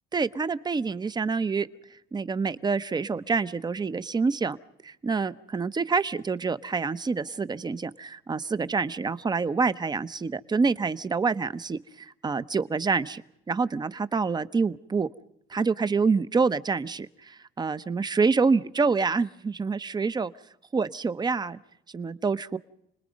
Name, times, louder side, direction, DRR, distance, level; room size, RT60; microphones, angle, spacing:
voice 1, 0.1-1.7 2.1-4.6 4.8-13.2 13.5-15.1 15.5-20.3 20.7-21.6 21.9-22.6, right 4 dB, 25° right, 14 dB, 1.0 m, -27 dB
30.0 x 20.5 x 5.3 m, 0.78 s
cardioid pair, 110°, 17 cm